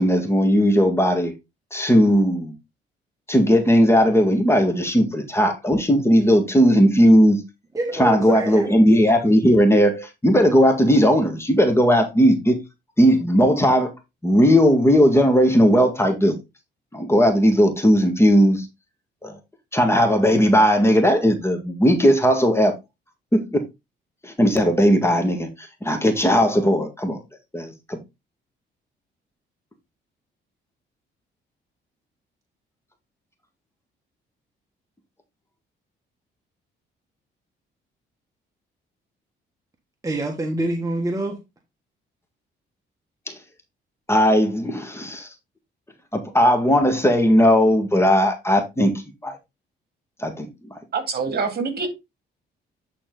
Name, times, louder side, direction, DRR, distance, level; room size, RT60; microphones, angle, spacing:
voice 1, 0.0-1.3 1.7-2.5 3.3-7.4 8.0-12.6 13.0-13.9 14.2-16.4 16.9-18.7 19.2-19.4 19.7-22.8 23.3-23.6 24.2-25.5 25.8-27.2 27.5-28.0 43.3-43.4 44.1-45.3 46.1-49.4 50.2-50.8, equal, 15° left, 1.8 m, -17 dB
voice 2, 7.7-8.7 40.0-41.4, right 2 dB, 15° right, 1.5 m, -25 dB
voice 3, 50.9-51.9, right 4 dB, 55° right, 2.2 m, -25 dB
8.9 x 4.1 x 3.9 m
cardioid pair, 90°, 20 cm